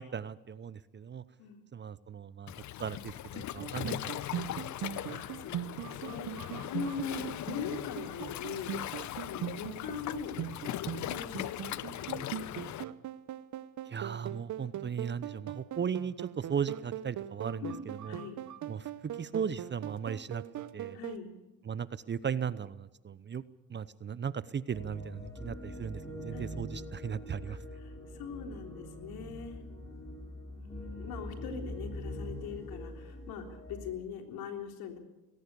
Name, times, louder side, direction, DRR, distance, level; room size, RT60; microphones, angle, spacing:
voice 1, 0.0-1.2 1.7-2.5 2.8-4.5 5.0-5.1 13.9-18.2 18.7-20.4 20.7-21.0 21.6-23.4 23.7-27.6, right 7 dB, 30° right, 17 dB, 0.8 m, -37 dB
Waves surf, 2.5-12.8, left 13 dB, 50° left, 0.8 m, -39 dB
sound 1, 3.6-21.2, right 11 dB, 50° right, 1.0 m, -41 dB
voice 2, 5.1-8.8 9.2-10.4 10.8-12.7 17.6-18.4 20.9-21.3 26.3-26.4 27.5-29.6 30.6-35.0, left 6 dB, 70° left, 4 dB, 3.7 m, -42 dB
sound 2, 24.7-33.9, equal, 5° left, 7.0 m, -43 dB
20.0 x 17.5 x 8.4 m, 1.0 s
supercardioid pair, 75°, 38 cm